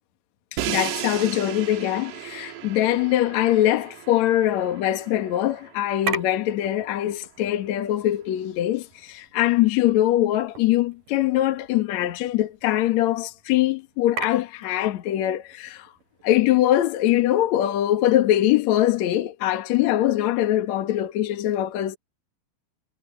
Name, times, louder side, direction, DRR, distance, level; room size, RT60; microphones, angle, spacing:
voice 1, 0.5-15.9 16.2-22.0, left 13 dB, 60° left, 2.0 m, -22 dB
Crash cymbal, 0.6-6.5, right 12 dB, 75° right, 3.4 m, -35 dB
sound 1, 5.9-17.9, right 3 dB, 50° right, 7.8 m, -40 dB
omnidirectional pair, 5.1 m